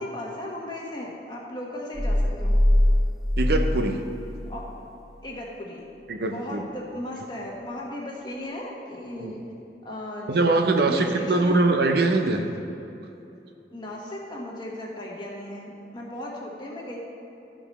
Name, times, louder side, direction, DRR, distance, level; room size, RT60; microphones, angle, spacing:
voice 1, 0.0-2.6 4.5-4.6 5.2-5.8 6.3-9.4 9.8-10.6 10.8-11.6 13.7-17.0, left 1 dB, 25° left, -3 dB, 1.5 m, -36 dB
sound 1, 1.9-4.7, left 1 dB, ahead, 1.0 m, -22 dB
voice 2, 3.4-4.0 6.1-6.6 9.1-9.3 10.3-12.5, right 2 dB, 60° right, 4 dB, 0.6 m, -22 dB
13.0 x 5.0 x 5.5 m, 2.9 s
head